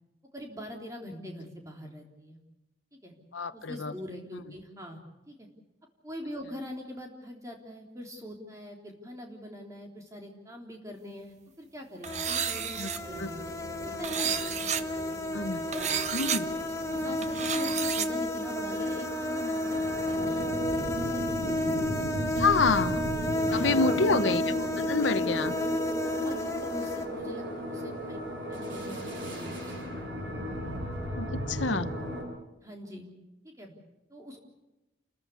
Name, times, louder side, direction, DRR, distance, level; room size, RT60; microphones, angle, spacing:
voice 1, 0.3-2.4 3.0-3.1 3.5-5.0 5.3-5.5 6.0-14.3 15.7-16.0 16.9-19.8 20.0-20.5 20.9-21.9 23.4-24.2 25.0-25.5 26.0-30.1 32.6-33.1 33.4-33.7 34.1-34.4, left 1 dB, 15° right, 1 dB, 3.5 m, -43 dB
voice 2, 3.3-3.9 12.8-12.9 13.2-13.3 15.3-15.6 16.1-16.5 22.4-23.0 23.5-25.5 31.2-31.9, left 4 dB, 90° left, 12 dB, 1.0 m, -27 dB
sound 1, 12.0-27.1, left 1 dB, 15° left, 1.5 m, -32 dB
sound 2, 12.0-13.0 14.0-14.8 15.7-16.4 17.2-18.1, right 8 dB, 35° right, 0.8 m, -31 dB
sound 3, 13.0-32.2, equal, 85° right, 7.8 m, -36 dB
29.5 x 14.5 x 8.3 m, 1.0 s
head